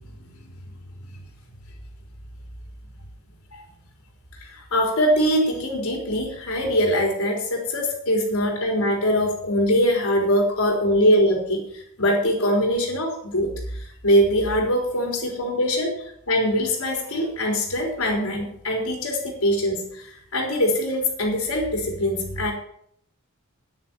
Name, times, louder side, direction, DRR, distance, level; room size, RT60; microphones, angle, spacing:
voice 1, 4.4-22.5, equal, 85° left, 0 dB, 3.9 m, -23 dB
10.5 x 9.9 x 7.4 m, 0.68 s
head